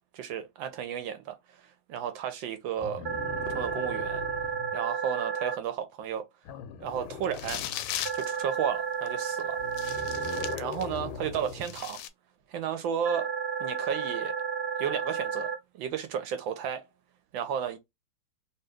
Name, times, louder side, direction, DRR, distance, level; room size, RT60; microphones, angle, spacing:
voice 1, 0.1-3.0 3.5-4.2 4.7-6.2 6.8-7.6 8.1-9.6 10.1-12.0 12.5-13.3 13.6-14.3 14.8-15.5 15.7-16.9 17.3-17.8, right 8 dB, 75° right, 1.4 m, -33 dB
sound 1, 2.8-4.8 6.4-8.2 9.5-11.8 13.1-13.2, left 7 dB, 90° left, 1.5 m, -41 dB
sound 2, 3.0-5.5 8.0-10.5 13.0-15.5, right 6 dB, 60° right, 1.1 m, -32 dB
sound 3, 7.2-8.3 9.1-9.2 9.7-11.0 11.3-12.1, left 11 dB, 75° left, 1.2 m, -37 dB
3.2 x 2.8 x 3.4 m
omnidirectional pair, 2.2 m